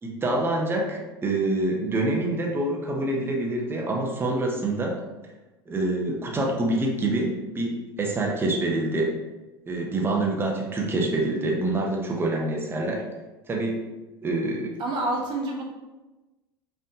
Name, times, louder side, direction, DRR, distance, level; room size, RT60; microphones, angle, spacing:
voice 1, 0.0-4.9 5.7-9.1 9.7-13.0 13.5-13.8 14.2-14.7, right 2 dB, 15° right, -1 dB, 0.8 m, -26 dB
voice 2, 14.8-15.6, right 2 dB, 35° right, -1 dB, 1.2 m, -27 dB
5.3 x 3.4 x 2.8 m, 1.1 s
figure-of-eight pair, 75°, 13 cm